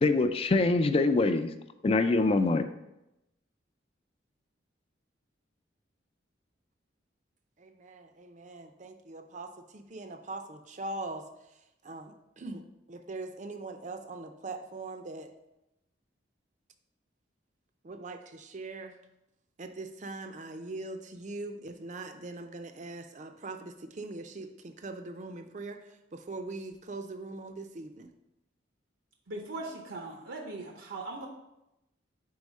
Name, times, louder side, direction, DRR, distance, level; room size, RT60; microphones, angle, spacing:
voice 1, 0.0-1.5 1.8-2.6, left 3 dB, 30° left, 8 dB, 0.3 m, -24 dB
voice 2, 7.6-15.3 17.8-19.0 19.6-28.1, right 2 dB, 40° right, 7 dB, 0.5 m, -41 dB
voice 3, 29.3-31.3, right 2 dB, 75° right, 1 dB, 0.7 m, -39 dB
4.7 x 4.3 x 5.3 m, 0.89 s
head